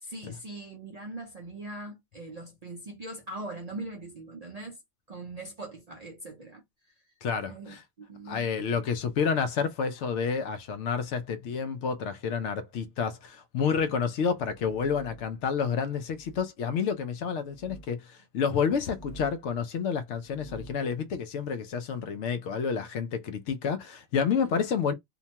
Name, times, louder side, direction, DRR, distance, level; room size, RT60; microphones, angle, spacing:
voice 1, 0.0-4.8 5.1-6.6 7.5-8.7 24.4-24.5, right 2 dB, 50° right, 0.4 m, -41 dB
voice 2, 7.2-7.8 8.3-24.9, left 6 dB, 75° left, 0.9 m, -29 dB
sound 1, 14.4-15.4 16.1-16.4 17.4-17.9 18.8-19.5 20.1-20.8, right 2 dB, 40° left, 0.7 m, -49 dB
2.8 x 2.2 x 2.8 m
omnidirectional pair, 1.3 m